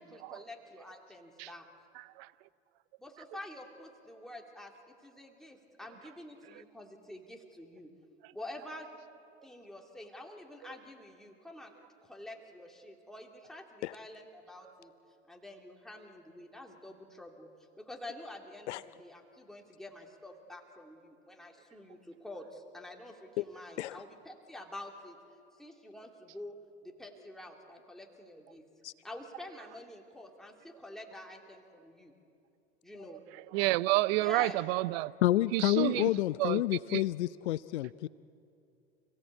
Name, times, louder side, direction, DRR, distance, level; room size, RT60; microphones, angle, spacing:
voice 1, 0.0-1.7 3.0-4.7 5.0-7.9 8.3-9.0 9.4-11.7 12.0-14.9 15.3-17.5 17.8-25.2 25.6-26.5 26.8-28.6 29.0-32.1 32.8-33.2 34.2-34.6, left 1 dB, ahead, 2.8 m, -48 dB
voice 2, 33.5-35.1 35.5-36.1 36.4-36.6 36.9-37.0, right 19 dB, 60° right, 0.7 m, -29 dB
voice 3, 35.2-38.1, left 15 dB, 75° left, 0.6 m, -29 dB
29.5 x 16.5 x 8.5 m
hypercardioid pair, 90°, 34 cm